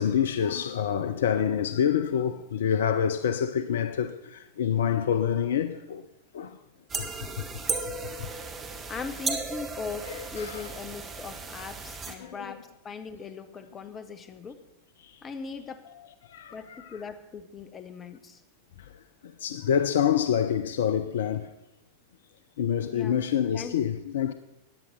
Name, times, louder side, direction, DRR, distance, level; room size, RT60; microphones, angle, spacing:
voice 1, 0.0-6.0 6.3-6.6 8.2-8.3 10.1-10.6 12.2-12.6 16.3-17.0 19.4-21.5 22.6-24.3, left 8 dB, 60° left, 0.6 m, -27 dB
sound 1, 6.9-12.1, right 4 dB, 25° right, 1.5 m, -35 dB
voice 2, 8.9-14.6 15.2-15.8 16.5-18.4 22.9-23.2 23.5-23.8, left 5 dB, 25° left, 1.2 m, -39 dB
14.0 x 9.7 x 5.9 m
figure-of-eight pair, 90°, 0 cm